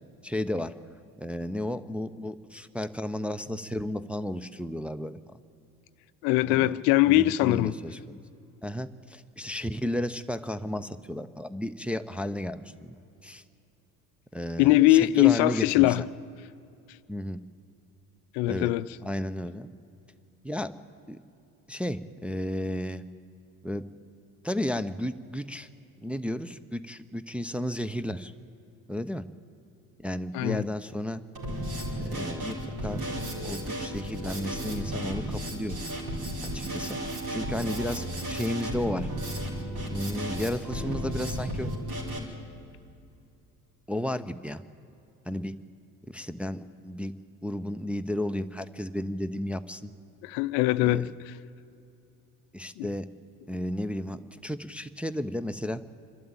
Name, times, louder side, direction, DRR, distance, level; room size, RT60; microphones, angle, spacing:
voice 1, 0.2-0.7 1.2-5.2 6.4-6.7 7.1-8.2 8.6-12.9 13.2-13.4 14.3-16.1 17.1-17.4 18.5-18.7 19.0-19.7 20.4-20.7 21.1-21.2 21.7-23.0 23.6-23.8 24.4-25.7 26.0-28.3 28.9-29.2 30.0-31.2 31.9-32.6 32.8-33.0 33.4-35.8 36.4-37.0 37.3-39.1 39.9-41.7 43.9-44.6 45.3-45.5 46.1-47.1 47.4-49.9 50.8-51.1 52.5-53.1 53.5-55.8, left 1 dB, 5° right, 8 dB, 0.6 m, -33 dB
voice 2, 6.2-7.7 14.6-16.0 18.3-18.9 30.3-30.6 50.2-51.1 52.8-52.9, left 16 dB, 60° left, 15 dB, 0.6 m, -21 dB
Drum kit, 31.3-42.2, right 1 dB, 50° right, 4.2 m, -34 dB
26.0 x 12.5 x 8.8 m, 2.6 s
figure-of-eight pair, 60°, 45 cm